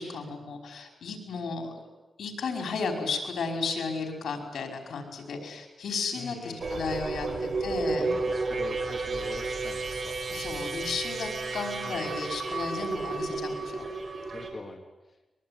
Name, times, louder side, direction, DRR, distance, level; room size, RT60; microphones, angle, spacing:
voice 1, 0.0-1.8 2.2-8.1 10.3-13.9, left 4 dB, 80° left, 3 dB, 5.3 m, -34 dB
voice 2, 6.2-6.8 7.3-7.4 7.9-10.2 11.8-12.1 14.3-14.8, left 3 dB, 30° left, 2 dB, 3.3 m, -42 dB
sound 1, 6.6-14.5, right 3 dB, 55° right, 5.2 m, -32 dB
23.0 x 22.5 x 9.9 m, 1.1 s
cardioid pair, 95°, 0 cm